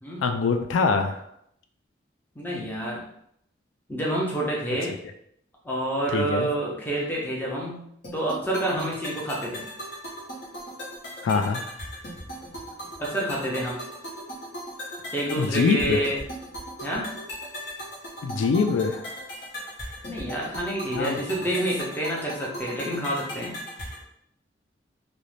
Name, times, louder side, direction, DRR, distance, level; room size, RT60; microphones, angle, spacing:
voice 1, 0.2-1.2 6.1-6.5 11.2-11.6 15.4-16.0 18.2-19.0 20.9-21.2, left 5 dB, 85° left, 6 dB, 0.3 m, -24 dB
voice 2, 2.4-3.0 3.9-4.9 5.6-7.8 8.1-9.6 13.0-13.8 15.1-16.2 16.8-17.1 20.1-23.6, right 1 dB, 10° left, -4 dB, 0.5 m, -28 dB
sound 1, 8.0-24.0, equal, 60° left, 0.9 m, -38 dB
2.5 x 2.0 x 3.1 m, 0.72 s
head